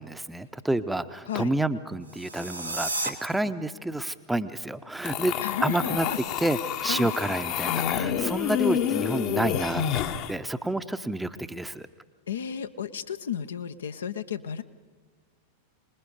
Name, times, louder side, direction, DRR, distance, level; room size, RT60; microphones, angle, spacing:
voice 1, 0.0-5.3 5.6-6.1 6.4-11.9, right 1 dB, 5° right, 11 dB, 0.8 m, -29 dB
sound 1, 2.0-3.1, right 2 dB, 85° right, 1.5 m, -32 dB
sound 2, 5.0-10.3, left 9 dB, 45° left, 1.0 m, -28 dB
voice 2, 5.4-6.2 6.9-7.1 12.3-14.6, left 8 dB, 65° left, 9 dB, 0.7 m, -33 dB
24.5 x 20.5 x 5.3 m, 1.5 s
figure-of-eight pair, 90°, 0 cm